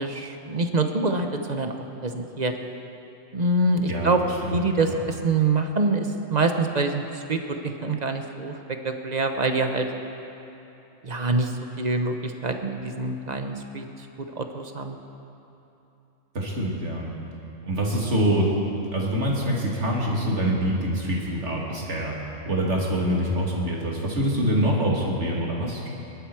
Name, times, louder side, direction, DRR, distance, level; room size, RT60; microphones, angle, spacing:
voice 1, 0.0-1.7 2.0-2.5 3.3-4.2 4.5-7.4 7.6-9.9 11.0-11.5 11.8-13.9 14.4-15.0, right 3 dB, 35° right, 5 dB, 0.9 m, -25 dB
voice 2, 4.4-4.8 16.3-17.1 17.6-18.5 18.9-22.1 22.4-25.9, right 1 dB, 60° right, -3 dB, 2.7 m, -25 dB
23.0 x 12.0 x 4.8 m, 3.0 s
omnidirectional pair, 1.3 m